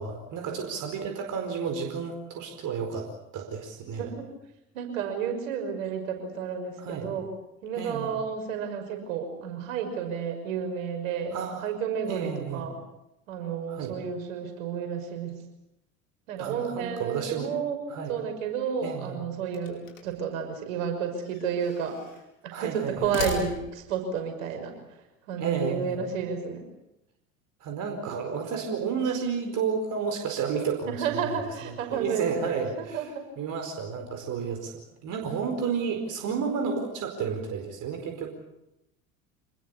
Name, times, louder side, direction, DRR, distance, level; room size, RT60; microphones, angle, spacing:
voice 1, 0.0-3.1 3.3-4.1 6.8-7.1 7.8-8.2 11.3-11.7 12.1-12.7 13.7-13.9 16.4-17.5 17.9-18.2 18.8-19.2 22.5-23.2 25.3-26.0 27.6-31.4 31.6-33.1 33.4-38.3, right 6 dB, 50° right, 4 dB, 4.7 m, -32 dB
voice 2, 4.7-7.3 7.6-11.4 11.6-12.8 13.3-15.3 16.3-17.8 18.1-22.0 22.4-24.7 25.3-26.7 30.9-32.3 32.8-33.3, right 7 dB, 70° right, 5 dB, 6.1 m, -31 dB
sound 1, 19.5-20.3 21.2-22.3 22.9-24.0, left 6 dB, 70° left, 5.1 m, -38 dB
27.0 x 20.5 x 8.3 m, 0.86 s
hypercardioid pair, 75°, 40 cm